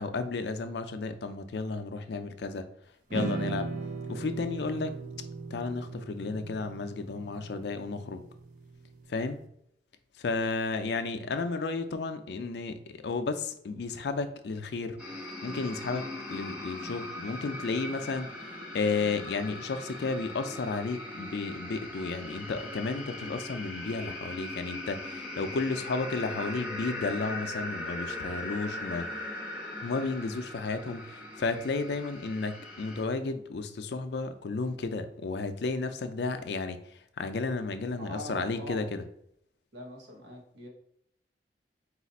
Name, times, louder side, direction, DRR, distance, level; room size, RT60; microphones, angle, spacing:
voice 1, 0.0-2.7 3.1-3.7 4.1-5.0 5.5-8.2 9.1-9.4 10.2-15.0 15.4-18.3 18.7-29.1 29.8-39.0, left 3 dB, 65° left, 8 dB, 0.4 m, -33 dB
sound 1, 3.1-9.4, right 4 dB, 45° right, 0.4 m, -38 dB
sound 2, 15.0-33.0, left 1 dB, 5° right, 1.0 m, -40 dB
voice 2, 38.0-38.8 39.7-40.7, equal, 85° right, -1 dB, 1.2 m, -43 dB
4.1 x 2.4 x 4.1 m, 0.72 s
head